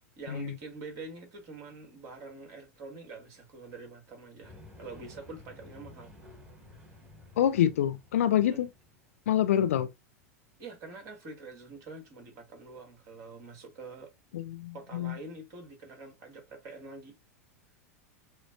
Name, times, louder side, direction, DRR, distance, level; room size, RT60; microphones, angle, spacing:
voice 1, 0.2-6.1 8.3-8.6 10.6-14.1 14.7-17.2, right 3 dB, 45° right, 2.0 m, -45 dB
sound 1, 4.4-9.7, left 1 dB, 20° right, 2.0 m, -53 dB
voice 2, 7.4-8.7 9.3-9.9 14.3-15.2, left 10 dB, 65° left, 0.4 m, -26 dB
6.4 x 2.3 x 2.6 m
figure-of-eight pair, 90°, 8 cm